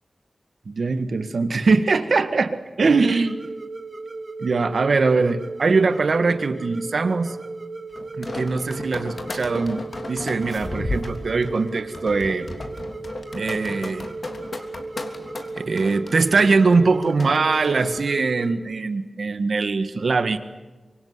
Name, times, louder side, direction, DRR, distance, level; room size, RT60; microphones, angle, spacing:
voice 1, 0.7-3.4 4.4-7.4 8.2-9.8 10.1-12.6 13.3-14.1 15.7-20.4, right 4 dB, 75° right, 10 dB, 1.7 m, -21 dB
sound 1, 2.9-18.5, right 3 dB, 55° right, 1.9 m, -36 dB
sound 2, 8.0-18.0, left 2 dB, 60° left, 3.2 m, -34 dB
25.5 x 24.0 x 9.7 m, 1.2 s
wide cardioid pair, 80°, 0 cm